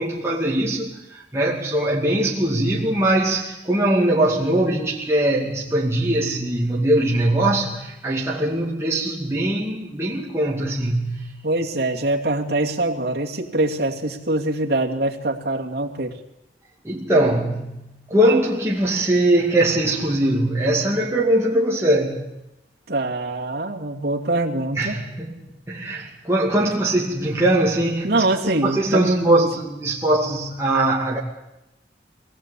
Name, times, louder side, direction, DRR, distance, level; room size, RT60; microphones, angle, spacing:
voice 1, 0.0-11.5 16.8-22.3 24.8-25.4 25.7-28.2 28.6-31.2, right 1 dB, 15° right, 2.4 m, -21 dB
voice 2, 11.4-16.2 22.9-25.0 28.0-29.5, right 2 dB, 60° right, 2.6 m, -24 dB
23.5 x 18.5 x 8.5 m
head